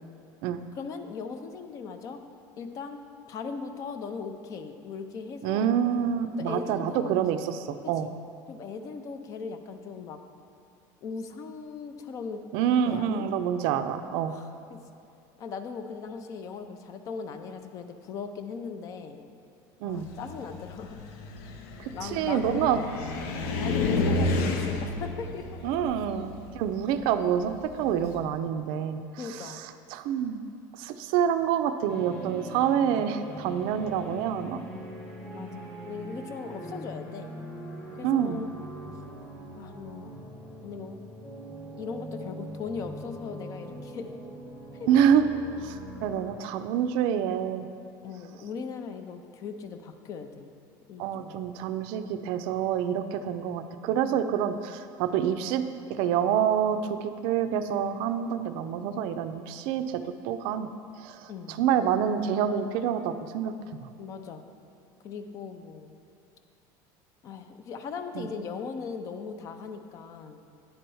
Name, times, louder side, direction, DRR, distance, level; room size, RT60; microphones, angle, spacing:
voice 1, 0.7-2.2 2.6-5.7 6.4-7.2 7.8-8.1 8.5-10.2 11.0-12.4 12.9-13.3 14.3-14.8 15.4-19.2 19.8-21.0 21.9-22.9 23.6-25.6 29.2-29.6 35.3-37.3 38.0-38.6 39.6-40.2 40.6-41.1 41.8-44.2 44.8-44.9 48.0-50.5 50.9-51.4 61.3-61.6 64.0-64.4 65.0-65.9 67.2-70.4, left 5 dB, 35° left, 8 dB, 0.5 m, -39 dB
voice 2, 5.4-8.1 12.5-14.3 19.8-20.1 21.8-22.8 25.6-29.0 29.9-30.4 30.8-34.6 38.0-38.4 44.9-45.3 45.6-47.7 51.0-60.7 61.0-63.9 68.2-68.3, right 9 dB, 60° right, 9 dB, 0.4 m, -27 dB
Car, 20.0-28.2, left 3 dB, 70° left, 0.7 m, -31 dB
sound 1, 31.9-46.4, equal, 10° left, 1.0 m, -42 dB
10.0 x 4.4 x 5.4 m, 2.6 s
cardioid pair, 170°, 10 cm